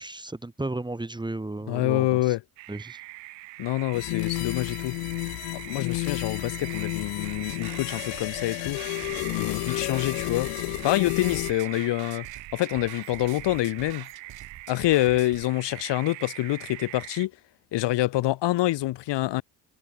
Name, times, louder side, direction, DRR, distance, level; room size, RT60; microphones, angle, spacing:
voice 1, 0.0-2.3 2.7-3.0, right 2 dB, 10° right, 1.8 m, -34 dB
voice 2, 1.7-2.4 3.6-5.0 5.5-8.8 9.3-10.5 10.8-12.3 12.5-14.1 14.7-17.3 17.7-19.4, left 16 dB, 65° left, 2.2 m, -26 dB
sound 1, 2.6-17.3, right 24 dB, 80° right, 5.1 m, -42 dB
sound 2, 3.9-11.5, left 29 dB, 85° left, 5.5 m, -31 dB
sound 3, 7.2-15.4, right 10 dB, 55° right, 7.1 m, -46 dB
supercardioid pair, 90°, 45 cm